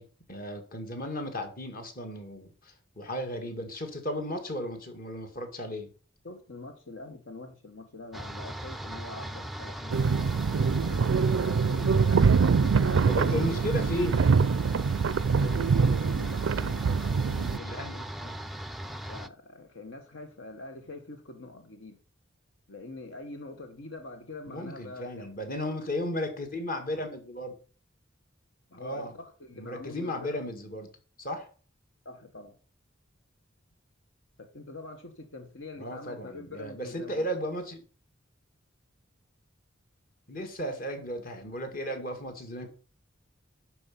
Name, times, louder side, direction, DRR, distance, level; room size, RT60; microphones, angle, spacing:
voice 1, 0.0-5.9 12.8-14.3 17.4-18.0 24.5-27.5 28.7-29.1 29.6-30.9 31.2-31.5 35.8-37.8 40.3-42.7, left 1 dB, 45° left, 2.0 m, -35 dB
voice 2, 6.2-10.0 10.8-13.2 15.4-18.4 19.1-22.0 22.7-25.3 28.7-30.4 32.0-32.6 34.4-37.3, left 2 dB, 75° left, 1.2 m, -44 dB
sound 1, 8.1-19.3, right 1 dB, ahead, 0.4 m, -39 dB
sound 2, 9.9-17.6, right 5 dB, 75° right, 0.4 m, -24 dB
11.5 x 4.8 x 5.6 m
head